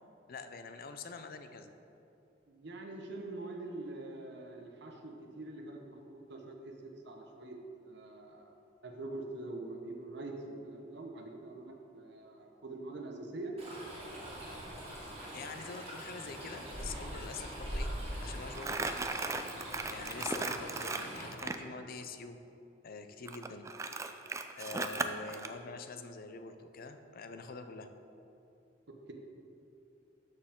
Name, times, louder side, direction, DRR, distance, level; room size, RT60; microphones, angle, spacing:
voice 1, 0.3-1.7 15.3-17.9 18.2-19.0 19.9-22.4 22.8-23.7 24.6-27.9, left 4 dB, 50° left, 8 dB, 0.5 m, -45 dB
voice 2, 2.5-8.6 8.8-13.5 20.2-20.3 28.9-29.1, right 2 dB, 65° right, 3 dB, 0.9 m, -44 dB
Stream, 13.6-21.3, equal, 35° right, 2.0 m, -42 dB
Crumpling crinkling, 18.5-21.6 23.3-25.5, right 3 dB, 15° right, 0.3 m, -36 dB
12.5 x 4.6 x 3.7 m, 2.8 s
head